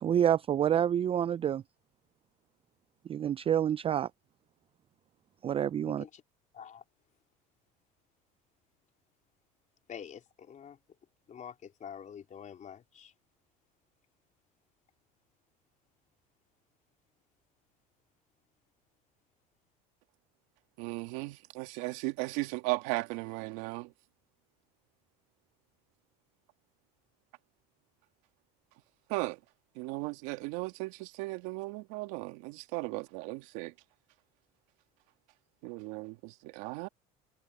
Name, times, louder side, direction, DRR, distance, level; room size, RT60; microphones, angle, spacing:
voice 1, 0.0-1.6 3.1-4.1 5.4-6.0, right 9 dB, 30° right, 0.4 m, -28 dB
voice 2, 5.9-6.2 6.5-6.8 9.9-10.8 11.3-13.1, left 8 dB, 40° left, 3.8 m, -47 dB
voice 3, 20.8-23.9 29.1-29.4 29.8-33.7 35.6-36.9, right 23 dB, 75° right, 2.1 m, -36 dB
supercardioid pair, 95°, 20 cm